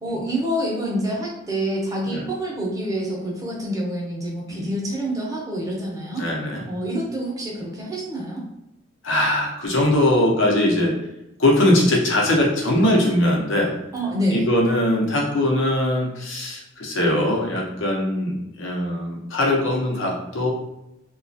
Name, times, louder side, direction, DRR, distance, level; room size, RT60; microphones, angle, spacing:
voice 1, 0.0-6.3 6.7-8.5 13.9-14.4, right 1 dB, 20° right, -3 dB, 0.7 m, -27 dB
voice 2, 6.1-6.6 9.0-10.9 11.4-13.7 14.3-20.5, left 1 dB, 85° left, -1 dB, 0.8 m, -21 dB
2.9 x 2.3 x 2.7 m, 0.89 s
head